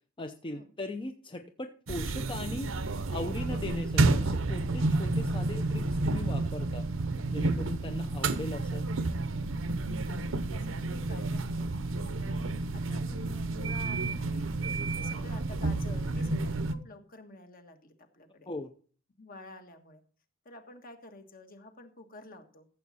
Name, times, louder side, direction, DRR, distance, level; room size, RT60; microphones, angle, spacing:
voice 1, 0.2-2.7 3.1-6.9 7.3-8.9 18.5-18.7, left 2 dB, 25° left, 6 dB, 0.6 m, -39 dB
sound 1, 1.9-16.7, right 2 dB, 75° right, 0.8 m, -30 dB
voice 2, 9.9-11.7 12.2-14.5 14.9-18.5 19.2-20.0 20.4-22.7, left 2 dB, 45° left, 6 dB, 1.4 m, -50 dB
14.0 x 7.4 x 4.2 m, 0.43 s
head